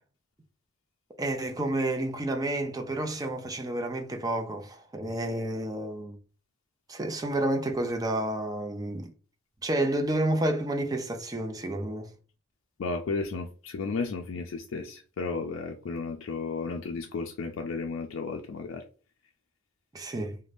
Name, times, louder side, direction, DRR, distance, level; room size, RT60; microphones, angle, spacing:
voice 1, 1.2-6.2 6.9-9.1 9.6-12.1 19.9-20.4, right 1 dB, 20° right, 0.4 m, -30 dB
voice 2, 12.8-18.8, left 4 dB, 80° left, 0.4 m, -33 dB
2.5 x 2.1 x 3.3 m
head